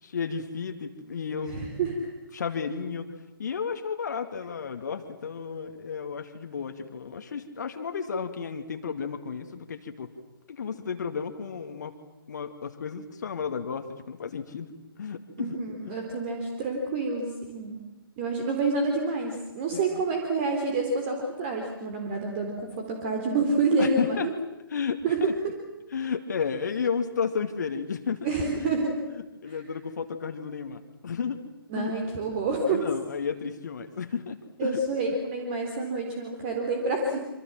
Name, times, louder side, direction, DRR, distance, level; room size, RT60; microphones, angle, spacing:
voice 1, 0.0-1.9 2.3-10.1 10.5-12.0 12.3-14.7 15.0-15.6 15.8-16.1 19.7-20.0 23.8-24.3 24.7-25.0 25.9-28.3 29.4-31.4 31.8-31.9 32.6-34.8, left 6 dB, 50° left, 6 dB, 2.3 m, -33 dB
voice 2, 1.5-2.1 15.4-17.8 18.2-24.3 25.0-25.2 28.2-29.1 29.5-29.6 31.7-32.9 34.6-37.2, right 3 dB, 30° right, 3 dB, 3.9 m, -28 dB
27.5 x 26.0 x 7.7 m, 1.0 s
figure-of-eight pair, 130°, 12 cm